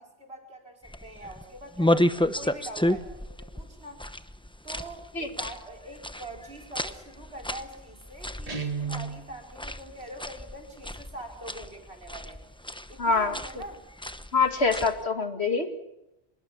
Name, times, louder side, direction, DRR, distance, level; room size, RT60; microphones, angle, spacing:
voice 1, 0.0-4.0 4.6-12.4 12.9-13.8, right 1 dB, 75° right, 2 dB, 5.1 m, -44 dB
sound 1, 0.8-15.0, left 1 dB, 5° left, 0.8 m, -32 dB
Guitar, 8.5-9.3, right 5 dB, 35° right, 1.8 m, -32 dB
voice 2, 13.0-13.4 14.3-15.7, left 4 dB, 80° left, 7 dB, 2.5 m, -24 dB
25.0 x 21.5 x 7.2 m, 0.91 s
omnidirectional pair, 1.1 m